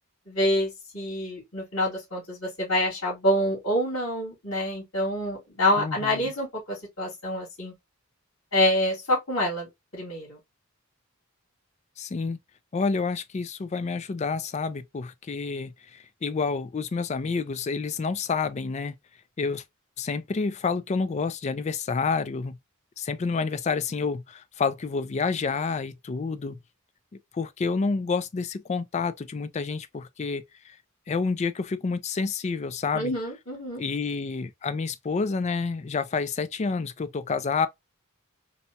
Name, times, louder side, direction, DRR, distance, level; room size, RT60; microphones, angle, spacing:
voice 1, 0.3-7.7 8.5-9.7 9.9-10.4 32.9-33.8, left 1 dB, 85° left, 2.5 m, -27 dB
voice 2, 5.8-6.3 12.0-12.4 12.7-18.9 19.4-19.6 20.0-22.6 23.0-26.5 27.3-30.7 31.1-33.1 33.8-37.7, left 4 dB, 30° left, 0.4 m, -29 dB
4.0 x 2.2 x 2.7 m
head